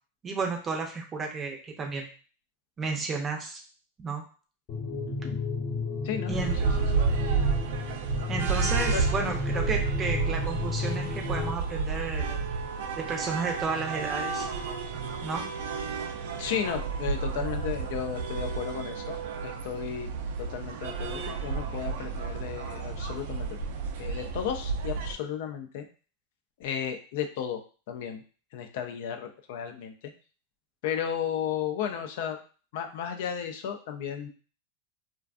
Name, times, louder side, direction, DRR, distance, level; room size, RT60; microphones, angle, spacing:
voice 1, 0.2-2.1 2.8-3.6 4.0-4.2 6.3-6.6 8.3-12.4 13.0-14.5 15.2-15.4, right 4 dB, 20° right, 2 dB, 0.5 m, -32 dB
sound 1, 4.7-11.5, left 4 dB, 40° left, 0.9 m, -33 dB
sound 2, 6.3-25.1, right 5 dB, 70° right, 0.4 m, -31 dB
voice 2, 16.4-20.1 20.4-23.5 24.0-25.9 26.6-27.6 27.9-28.2 28.5-29.9 30.8-32.4 32.7-34.3, left 8 dB, 65° left, 6 dB, 0.4 m, -34 dB
2.4 x 2.2 x 2.4 m, 0.38 s
supercardioid pair, 130°, 0 cm